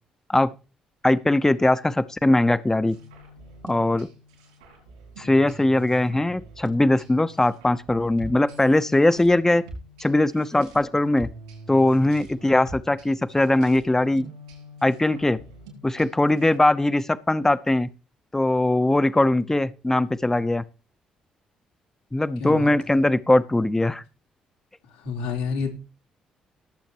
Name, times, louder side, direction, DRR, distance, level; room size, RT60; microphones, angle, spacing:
voice 1, 1.0-3.0 3.6-4.1 5.2-9.6 10.0-11.3 11.7-14.3 14.8-15.4 15.8-17.9 18.3-20.6 22.1-24.0, left 1 dB, 15° left, 0.9 m, -20 dB
sound 1, 2.9-16.6, right 1 dB, 85° right, 6.0 m, -45 dB
voice 2, 25.0-25.7, left 5 dB, 85° left, 3.5 m, -28 dB
19.0 x 8.1 x 3.1 m
hypercardioid pair, 45°, 3 cm